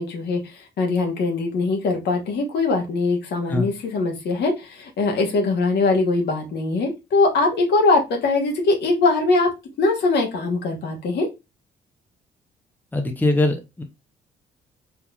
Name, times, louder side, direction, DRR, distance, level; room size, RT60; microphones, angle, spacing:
voice 1, 0.0-9.5 9.8-11.3, left 3 dB, 65° left, 1 dB, 1.1 m, -21 dB
voice 2, 12.9-13.8, left 2 dB, 10° left, 5 dB, 0.7 m, -22 dB
3.6 x 2.8 x 2.3 m, 0.24 s
supercardioid pair, 65°, 18 cm